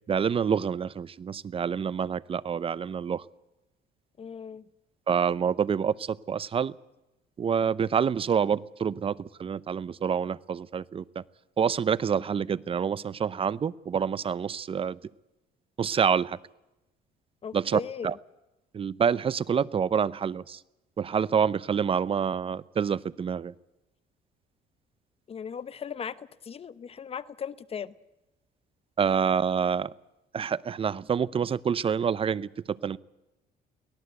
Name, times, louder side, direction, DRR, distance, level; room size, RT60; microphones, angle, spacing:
voice 1, 0.1-3.2 5.1-6.7 7.4-11.2 11.6-15.0 15.8-16.4 17.5-18.2 18.7-20.6 21.0-23.5 29.0-29.9 30.3-33.0, right 7 dB, 35° right, 20 dB, 0.7 m, -27 dB
voice 2, 4.2-4.6 17.4-18.1 25.3-27.9, left 7 dB, 35° left, 16 dB, 1.0 m, -38 dB
23.5 x 18.0 x 8.0 m, 0.97 s
cardioid pair, 110°, 17 cm